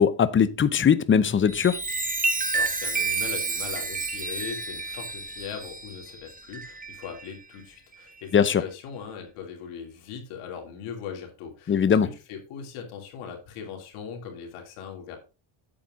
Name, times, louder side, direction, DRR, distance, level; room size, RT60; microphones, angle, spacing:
voice 1, 0.0-1.8 8.3-8.6 11.7-12.1, left 7 dB, 25° left, 0.7 m, -20 dB
Chime, 1.4-7.4 7.9-8.2, right 4 dB, 15° right, 1.4 m, -30 dB
voice 2, 2.2-15.2, left 7 dB, 90° left, 3.0 m, -40 dB
8.6 x 7.7 x 3.7 m
cardioid pair, 115°, 49 cm